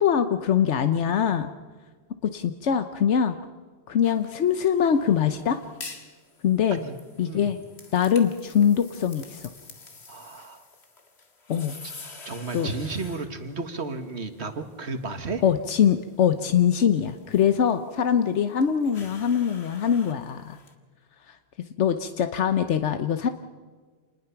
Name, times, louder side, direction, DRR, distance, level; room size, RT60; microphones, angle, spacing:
voice 1, 0.0-1.5 2.2-3.4 3.9-5.6 6.4-6.8 7.2-7.6 7.9-9.5 11.5-11.7 12.5-12.7 15.4-20.6 21.3-21.4 21.8-23.3, left 8 dB, 85° left, 9 dB, 1.2 m, -23 dB
sound 1, 4.0-20.7, left 3 dB, 70° left, 2.2 m, -48 dB
voice 2, 10.1-10.6 11.8-11.9 12.3-15.4, right 3 dB, 70° right, 8 dB, 2.0 m, -33 dB
27.5 x 20.5 x 5.9 m, 1.5 s
omnidirectional pair, 1.2 m